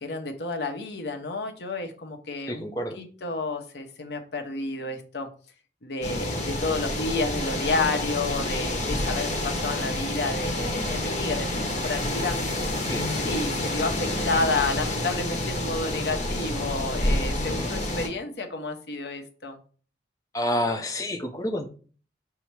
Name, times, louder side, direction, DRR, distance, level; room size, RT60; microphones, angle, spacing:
voice 1, 0.0-2.6 3.0-5.3 5.8-12.4 13.0-19.6, left 3 dB, 70° left, 5 dB, 0.8 m, -30 dB
voice 2, 2.5-3.0 8.8-9.0 12.9-13.1 17.4-17.7 20.3-21.7, left 1 dB, 20° left, 4 dB, 0.5 m, -29 dB
sound 1, 6.0-18.1, left 1 dB, 40° left, 0.8 m, -28 dB
5.5 x 2.0 x 4.6 m, 0.41 s
head